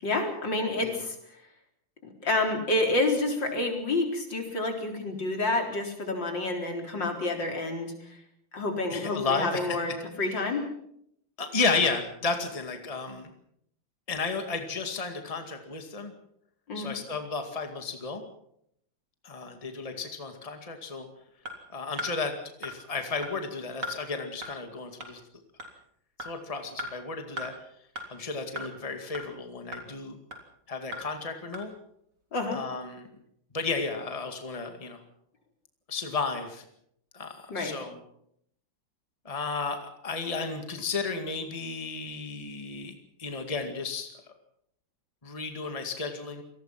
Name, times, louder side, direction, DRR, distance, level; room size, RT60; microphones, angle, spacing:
voice 1, 0.0-1.2 2.0-8.2 8.5-10.7 16.7-16.9 32.3-32.6 37.5-37.8, left 2 dB, 65° left, 3 dB, 4.7 m, -29 dB
voice 2, 8.9-9.8 10.3-10.4 11.4-13.3 14.1-16.1 16.7-18.2 19.2-21.1 21.7-22.3 22.6-25.2 26.2-27.5 28.1-30.2 30.7-31.7 32.5-33.1 33.5-35.0 35.9-36.6 37.1-38.0 39.2-44.1 45.2-46.4, left 4 dB, 20° left, 5 dB, 2.2 m, -33 dB
sound 1, 21.4-21.5 22.0-22.1 22.6-22.7 23.2-23.3 23.8-24.0 24.4-24.5 25.0-25.1 25.6-25.7 26.2-26.3 26.8-26.9 27.4-27.5 28.0-28.1 28.6-28.7 29.1-29.2 29.7-29.8 30.3-30.4 30.9-31.0 31.5-31.6, equal, 60° right, 4.1 m, -36 dB
27.5 x 19.5 x 5.9 m, 0.72 s
omnidirectional pair, 2.1 m